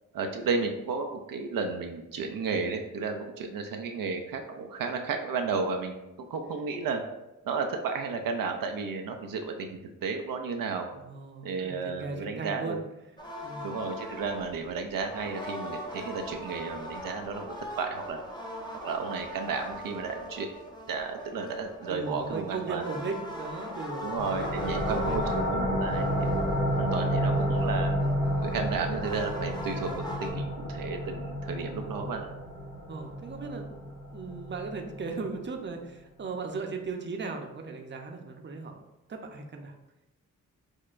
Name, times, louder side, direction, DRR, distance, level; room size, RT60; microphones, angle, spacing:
voice 1, 0.1-7.0 7.4-10.9 11.4-12.8 13.6-18.2 18.8-20.5 20.9-22.8 24.0-26.4 26.8-27.9 28.4-32.3, right 4 dB, 85° right, 4 dB, 0.5 m, -33 dB
voice 2, 10.9-12.8 13.4-13.7 21.9-25.6 31.7-32.2 32.9-38.8 39.1-39.7, right 4 dB, 35° right, 3 dB, 0.6 m, -37 dB
sound 1, 13.2-30.3, left 1 dB, 15° left, 0.8 m, -41 dB
sound 2, 24.2-35.5, equal, 65° left, 1.1 m, -30 dB
6.2 x 2.1 x 2.4 m, 0.95 s
cardioid pair, 60°, 33 cm